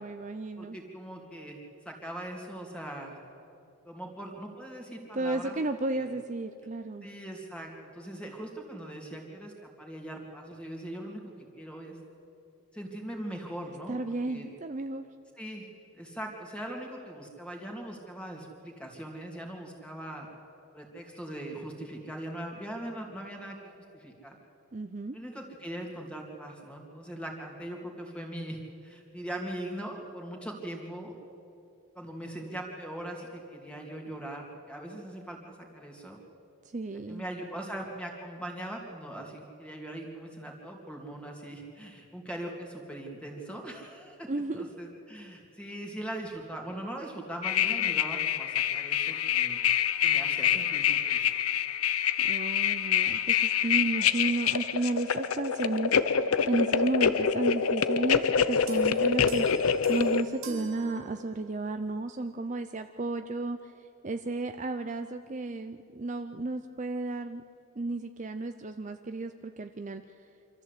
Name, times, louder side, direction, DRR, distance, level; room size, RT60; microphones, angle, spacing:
voice 1, 0.0-0.8 5.1-7.1 13.9-15.1 24.7-25.2 36.7-37.2 44.3-44.7 52.2-63.7 64.0-67.4 67.8-70.0, right 2 dB, 35° right, 8 dB, 0.5 m, -33 dB
voice 2, 0.6-1.6 1.8-3.2 3.8-5.6 5.9-6.1 7.0-12.0 12.7-14.5 15.4-15.7 15.9-20.3 20.7-23.6 23.9-24.3 25.1-31.1 31.9-36.2 37.1-44.3 44.5-49.6 50.0-51.2, right 1 dB, 5° left, 0 dB, 2.7 m, -40 dB
sound 1, 47.4-60.2, left 8 dB, 85° left, 0.7 m, -26 dB
sound 2, 58.7-61.7, right 3 dB, 70° right, 2.6 m, -45 dB
25.5 x 14.0 x 8.3 m, 2.6 s
head